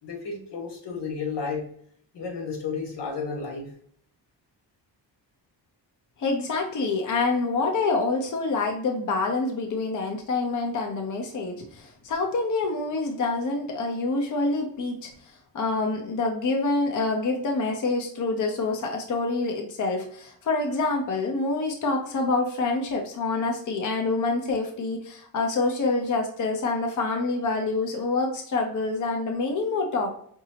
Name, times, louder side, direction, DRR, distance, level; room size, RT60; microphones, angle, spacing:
voice 1, 0.0-1.7 2.1-3.7, left 5 dB, 90° left, 1 dB, 1.4 m, -32 dB
voice 2, 6.2-30.1, left 3 dB, 45° left, 2 dB, 0.7 m, -27 dB
4.9 x 2.7 x 2.8 m, 0.62 s
wide cardioid pair, 160°, 41 cm